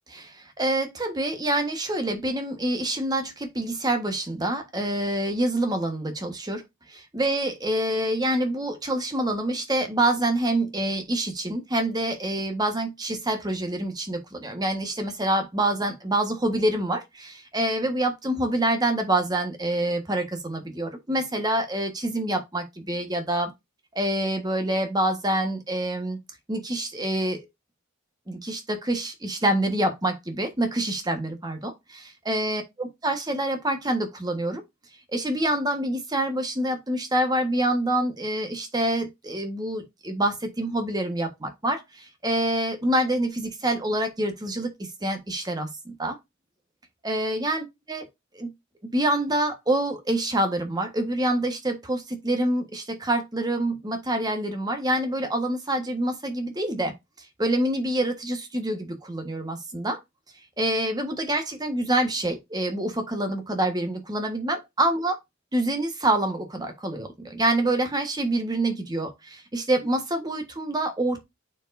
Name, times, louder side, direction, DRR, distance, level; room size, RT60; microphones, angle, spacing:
voice 1, 0.1-6.6 7.1-23.5 23.9-26.2 26.5-27.4 28.3-34.6 35.1-44.7 45.0-46.2 47.0-48.1 48.3-48.5 48.9-56.9 57.4-60.0 60.6-65.1 65.5-71.2, right 1 dB, 20° right, 1.3 m, -26 dB
8.6 x 4.7 x 2.6 m
head